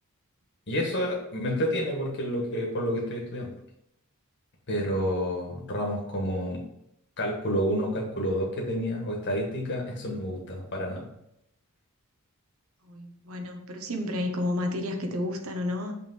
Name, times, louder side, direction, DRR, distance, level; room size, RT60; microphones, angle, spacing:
voice 1, 0.7-3.5 4.7-6.6 7.2-11.0, equal, 55° left, -2 dB, 1.4 m, -29 dB
voice 2, 12.8-15.9, left 1 dB, 70° right, 4 dB, 1.0 m, -31 dB
5.8 x 3.5 x 5.3 m, 0.79 s
head